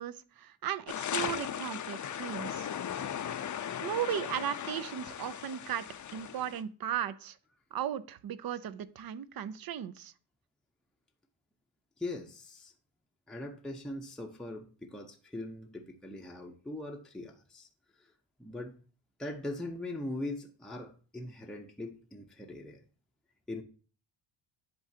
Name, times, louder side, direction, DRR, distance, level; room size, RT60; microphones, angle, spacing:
voice 1, 0.0-2.7 3.8-7.4 7.7-10.1, right 10 dB, 45° right, 15 dB, 0.6 m, -36 dB
sound 1, 0.9-6.6, left 9 dB, 40° left, 0.6 m, -37 dB
voice 2, 12.0-12.7 13.3-17.7 18.0-18.1 18.4-18.7 19.2-22.8 23.5-23.6, left 2 dB, ahead, 1 dB, 0.7 m, -41 dB
10.5 x 3.8 x 2.7 m, 0.39 s
cardioid pair, 90°, 49 cm